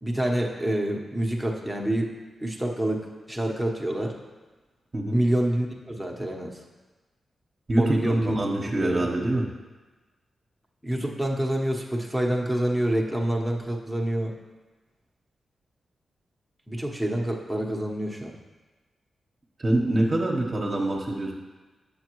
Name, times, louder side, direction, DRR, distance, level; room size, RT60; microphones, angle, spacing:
voice 1, 0.0-2.1 2.4-4.2 5.1-6.6 7.8-8.4 8.8-9.1 10.8-14.3 16.7-18.4, right 1 dB, ahead, -1 dB, 1.1 m, -27 dB
voice 2, 7.7-9.5 19.6-21.3, right 1 dB, 40° right, -2 dB, 1.0 m, -25 dB
7.8 x 6.7 x 3.1 m, 1.2 s
supercardioid pair, 45°, 0 cm